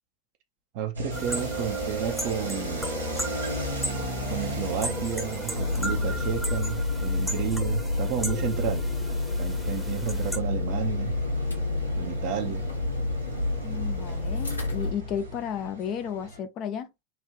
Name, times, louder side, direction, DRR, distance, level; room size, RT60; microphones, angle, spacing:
voice 1, 0.7-2.9 4.3-8.8 9.4-11.2 12.0-12.7, right 8 dB, 45° right, 0.9 m, -32 dB
sound 1, 0.9-16.4, equal, 80° right, 1.2 m, -36 dB
sound 2, 1.1-10.4, equal, 5° right, 1.0 m, -36 dB
sound 3, 5.5-14.9, left 2 dB, 80° left, 1.2 m, -29 dB
voice 2, 13.6-16.9, left 8 dB, 35° left, 0.6 m, -33 dB
3.9 x 2.6 x 3.2 m
figure-of-eight pair, 90°, 0 cm